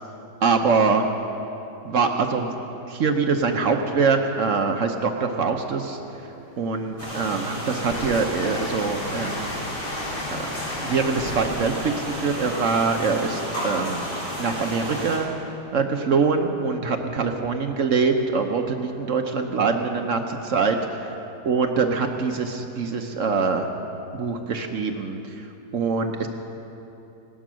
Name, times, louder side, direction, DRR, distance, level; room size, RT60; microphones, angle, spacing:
voice 1, 0.4-1.1 1.8-2.5 2.9-6.0 6.6-9.5 10.3-10.5 10.8-14.0 14.4-15.3 15.7-20.8 21.5-23.7 24.1-25.2 25.7-26.3, right 4 dB, 55° right, 4 dB, 1.0 m, -24 dB
Train, 6.3-14.0, left 2 dB, 40° left, 1.1 m, -38 dB
sound 1, 7.0-15.2, equal, 70° left, 5.4 m, -32 dB
17.5 x 11.5 x 6.2 m, 2.9 s
omnidirectional pair, 1.9 m